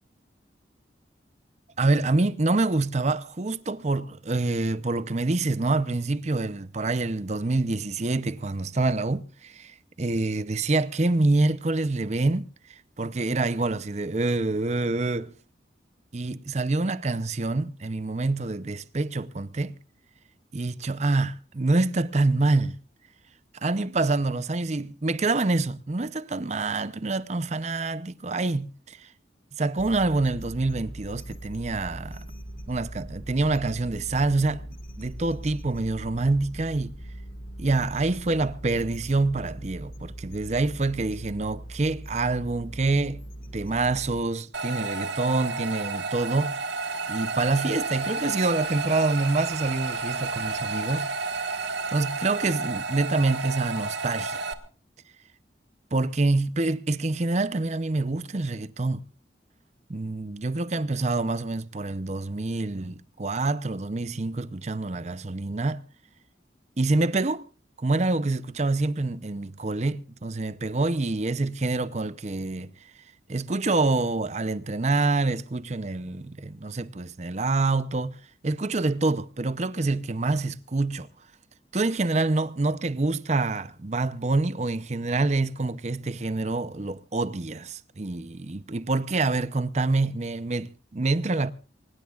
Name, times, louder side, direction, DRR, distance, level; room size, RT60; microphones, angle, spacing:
voice 1, 1.8-12.5 13.0-15.3 16.1-19.7 20.5-22.8 23.6-29.1 29.6-32.2 32.7-34.6 35.0-36.9 37.6-43.2 43.5-46.6 47.1-51.1 51.9-54.4 55.9-59.0 59.9-65.8 66.8-67.5 67.8-72.7 73.3-78.2 78.4-81.1 81.7-91.5, right 3 dB, 40° right, 0.7 m, -26 dB
sound 1, 29.8-44.2, right 1 dB, 50° left, 1.9 m, -40 dB
sound 2, 44.5-54.5, right 4 dB, 75° right, 1.6 m, -31 dB
24.0 x 20.0 x 2.4 m
head